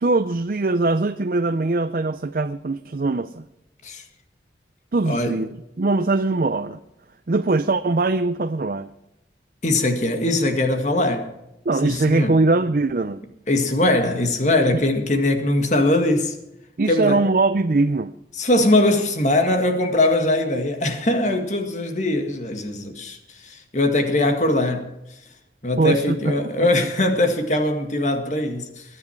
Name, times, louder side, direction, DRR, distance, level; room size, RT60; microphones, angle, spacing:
voice 1, 0.0-3.4 4.9-6.8 7.3-8.9 11.7-13.2 16.8-18.1 25.8-26.3, right 3 dB, 50° right, 0.5 m, -21 dB
voice 2, 5.1-5.4 9.6-11.3 11.8-12.4 13.5-16.3 16.9-17.2 18.4-23.2 23.4-24.9 25.6-28.8, left 1 dB, 40° left, 1.9 m, -21 dB
22.0 x 9.8 x 4.6 m
head